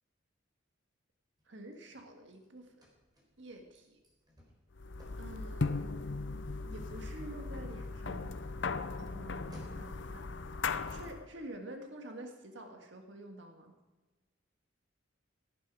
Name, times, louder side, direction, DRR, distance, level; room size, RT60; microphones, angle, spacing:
Car / Slam, 1.4-10.1, equal, 20° right, 4.3 m, -60 dB
voice 1, 1.5-2.9 3.4-4.0 5.2-6.0 6.6-8.6 9.0-10.3 10.9-13.7, right 1 dB, 65° right, 4 dB, 1.8 m, -48 dB
sound 1, 4.8-11.3, left 4 dB, 65° left, 0.7 m, -38 dB
17.0 x 11.0 x 4.9 m, 1.2 s
head